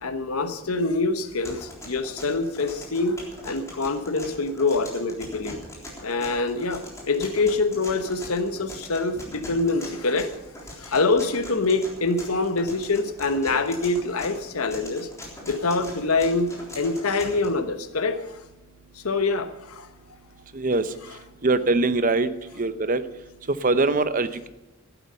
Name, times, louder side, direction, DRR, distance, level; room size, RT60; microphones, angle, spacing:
voice 1, 0.0-3.2 3.4-5.6 6.0-10.3 10.7-15.1 15.5-18.4 18.9-19.9, left 3 dB, 85° left, 9 dB, 1.1 m, -25 dB
sound 1, 1.5-17.5, left 1 dB, 15° left, 3.6 m, -41 dB
voice 2, 21.4-22.3 22.6-23.0 23.6-24.5, right 3 dB, 40° right, 12 dB, 0.8 m, -22 dB
15.0 x 11.0 x 5.6 m, 1.0 s
head